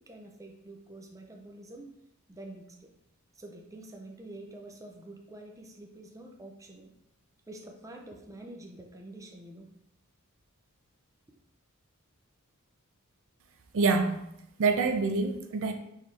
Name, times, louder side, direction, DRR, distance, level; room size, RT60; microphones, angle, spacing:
voice 1, 0.0-1.9 2.3-2.7 3.3-6.9 7.5-9.7, right 1 dB, 15° right, 2 dB, 0.5 m, -47 dB
voice 2, 13.7-14.2 14.6-15.7, right 4 dB, 65° right, 6 dB, 0.5 m, -26 dB
4.6 x 3.5 x 3.2 m, 0.80 s
head